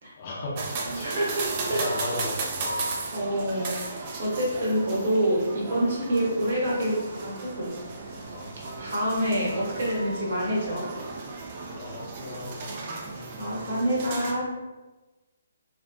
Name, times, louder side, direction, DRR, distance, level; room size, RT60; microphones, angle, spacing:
voice 1, 0.1-2.9 8.2-8.9 9.6-9.8 11.6-12.7, left 2 dB, 40° left, -4 dB, 0.6 m, -37 dB
sound 1, 0.6-14.3, right 3 dB, 35° right, 0.4 m, -35 dB
voice 2, 0.9-1.4 1.7-1.8 3.1-3.8 4.2-7.7 8.8-10.9 13.4-14.5, equal, 55° right, -4 dB, 0.9 m, -27 dB
2.4 x 2.3 x 2.2 m, 1.2 s
figure-of-eight pair, 135°, 0 cm